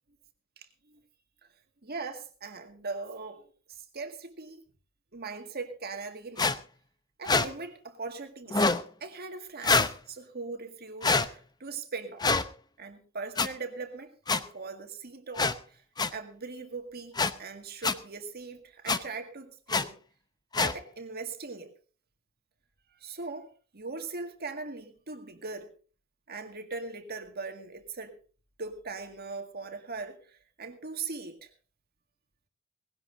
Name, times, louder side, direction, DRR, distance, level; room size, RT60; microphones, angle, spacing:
voice 1, 1.8-4.6 5.1-6.5 7.2-8.7 9.0-12.3 12.8-15.8 16.1-17.1 17.4-20.0 20.6-21.7 23.0-23.5 23.7-25.7 26.3-28.2 28.6-31.5, right 4 dB, 50° right, 1.9 m, -40 dB
sound 1, 6.4-6.5 7.2-7.5 8.5-8.8 9.6-9.9 11.0-11.3 12.2-12.4 13.4-13.5 14.3-14.4 15.4-15.5 16.0-16.1 17.1-17.3 17.8-17.9 18.9-19.0 19.7-19.8 20.5-20.7, left 4 dB, 20° left, 0.7 m, -24 dB
19.0 x 17.0 x 2.6 m
head